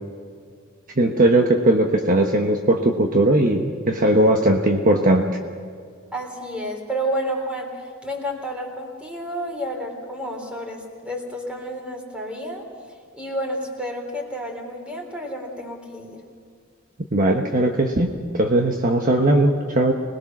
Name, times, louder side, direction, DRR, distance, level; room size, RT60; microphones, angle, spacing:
voice 1, 1.0-5.2 17.1-18.1 18.3-19.9, right 1 dB, 40° right, 2 dB, 1.2 m, -18 dB
voice 2, 6.1-12.7 13.1-16.2, equal, 5° right, 1 dB, 3.8 m, -30 dB
25.5 x 20.5 x 6.1 m, 2.1 s
head